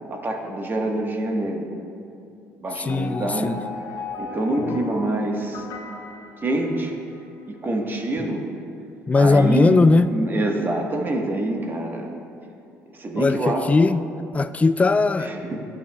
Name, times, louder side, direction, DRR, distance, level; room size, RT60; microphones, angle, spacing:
voice 1, 0.1-1.7 2.6-3.6 4.2-5.7 6.4-6.9 7.5-8.5 9.1-9.8 10.1-12.2 12.9-13.7 15.2-15.6, right 2 dB, 30° right, 2 dB, 1.3 m, -26 dB
voice 2, 2.8-3.6 4.6-4.8 8.2-8.3 9.1-10.1 13.2-14.0 14.3-15.3, left 3 dB, 20° left, 13 dB, 0.3 m, -19 dB
sound 1, 2.9-7.2, left 4 dB, 65° left, 0.8 m, -36 dB
13.5 x 8.3 x 2.3 m, 2.6 s
supercardioid pair, 75°, 6 cm